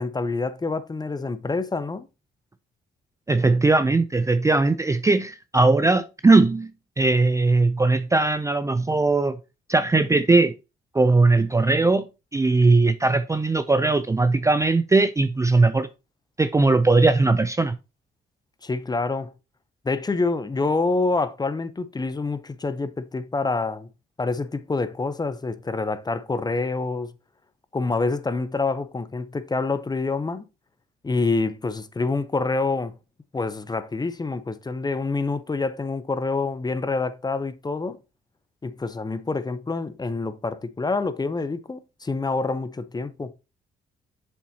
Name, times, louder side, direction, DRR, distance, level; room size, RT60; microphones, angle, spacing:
voice 1, 0.0-2.1 18.6-19.3 19.8-23.9 24.2-27.1 27.7-30.5 31.0-33.0 33.3-38.0 38.6-43.3, left 3 dB, 20° left, 0.7 m, -27 dB
voice 2, 3.3-6.7 7.0-9.4 9.7-10.5 10.9-12.0 12.3-15.9 16.4-17.8, right 3 dB, 15° right, 0.4 m, -19 dB
7.4 x 7.2 x 2.8 m
cardioid pair, 90°, 20 cm